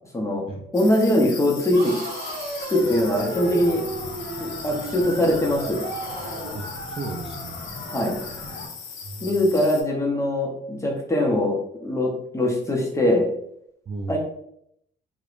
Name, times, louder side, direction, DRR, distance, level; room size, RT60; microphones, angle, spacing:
voice 1, 0.1-0.4 0.7-1.9 2.7-3.8 4.4-5.8 7.9-8.1 9.2-11.6 11.8-13.3 14.1-14.2, left 1 dB, 15° left, -1 dB, 0.6 m, -22 dB
sound 1, 0.7-9.8, left 6 dB, 80° left, 0.5 m, -39 dB
sound 2, 1.7-6.6, right 2 dB, 50° right, 0.9 m, -34 dB
sound 3, 2.8-8.7, left 1 dB, 45° left, 0.8 m, -39 dB
voice 2, 6.5-7.6 9.0-9.4 13.9-14.2, right 3 dB, 30° right, 0 dB, 0.3 m, -34 dB
2.7 x 2.1 x 2.4 m, 0.73 s
cardioid pair, 90°, 20 cm